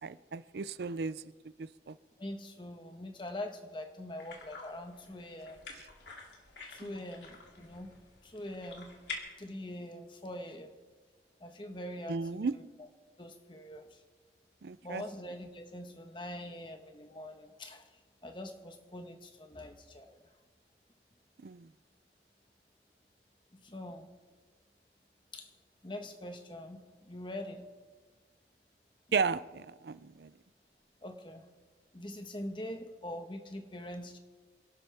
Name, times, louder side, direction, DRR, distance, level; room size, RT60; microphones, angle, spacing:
voice 1, 0.0-1.2 1.6-1.9 6.8-6.9 12.1-12.5 14.6-15.0 21.4-21.7 29.1-30.3, right 5 dB, 70° right, 16 dB, 0.5 m, -34 dB
voice 2, 2.2-5.7 6.7-7.9 8.2-8.9 9.4-10.7 11.4-12.9 13.2-14.0 14.8-17.9 18.2-20.2 23.6-24.1 25.3-25.5 25.8-27.7 31.0-31.4 31.9-34.2, left 1 dB, 30° left, 6 dB, 1.3 m, -43 dB
sound 1, 4.2-9.2, left 4 dB, 85° left, 2.8 m, -48 dB
28.0 x 12.0 x 3.5 m, 1.4 s
head